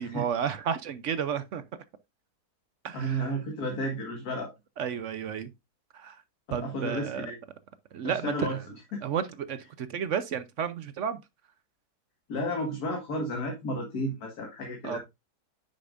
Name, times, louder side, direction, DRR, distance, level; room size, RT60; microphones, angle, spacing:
voice 1, 0.0-1.6 2.8-3.2 4.8-5.5 5.9-6.2 6.5-7.3 7.9-8.6 9.0-11.2 14.8-15.0, right 7 dB, 60° right, 0.9 m, -32 dB
voice 2, 2.9-4.5 6.5-7.4 8.0-8.6 8.9-9.0 12.3-15.0, equal, 80° left, 2.2 m, -32 dB
9.6 x 6.7 x 2.5 m
omnidirectional pair, 1.6 m